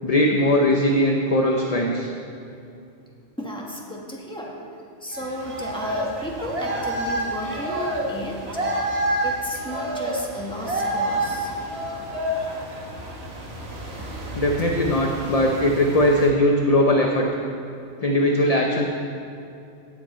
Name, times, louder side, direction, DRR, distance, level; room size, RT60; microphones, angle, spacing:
voice 1, 0.0-2.1 14.3-17.3 18.0-18.8, left 1 dB, 35° left, 1 dB, 0.8 m, -20 dB
voice 2, 3.4-4.5 5.0-8.4 9.2-11.5, equal, 5° left, -3 dB, 1.6 m, -33 dB
sound 1, 5.1-16.3, right 1 dB, 60° right, 1.8 m, -29 dB
17.0 x 8.1 x 4.4 m, 2.6 s
omnidirectional pair, 1.2 m